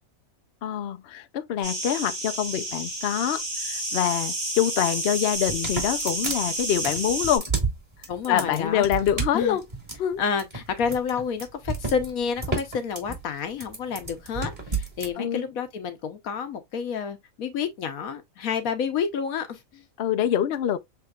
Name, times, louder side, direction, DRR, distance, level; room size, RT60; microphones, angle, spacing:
voice 1, 0.6-7.4 8.3-9.6 10.0-10.2 15.2-15.5 20.0-20.8, left 10 dB, 60° left, 0.7 m, -25 dB
sound 1, 1.6-7.4, right 1 dB, 70° right, 4.6 m, -30 dB
sound 2, 5.3-15.1, right 4 dB, 30° right, 2.0 m, -31 dB
voice 2, 8.1-8.9 9.3-9.6 10.2-19.8, left 6 dB, 75° left, 1.4 m, -29 dB
6.9 x 3.3 x 2.3 m
omnidirectional pair, 1.5 m